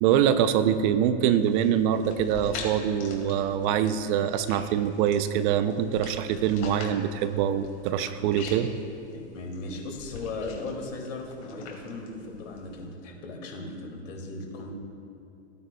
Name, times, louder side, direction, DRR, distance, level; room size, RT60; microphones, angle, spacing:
voice 1, 0.0-8.7, right 9 dB, 45° right, 11 dB, 0.5 m, -24 dB
sound 1, 1.3-12.8, left 4 dB, 65° left, 2.3 m, -44 dB
voice 2, 9.3-14.7, left 2 dB, 85° left, 0 dB, 2.2 m, -37 dB
15.0 x 9.2 x 2.2 m, 2.8 s
supercardioid pair, 135°, 37 cm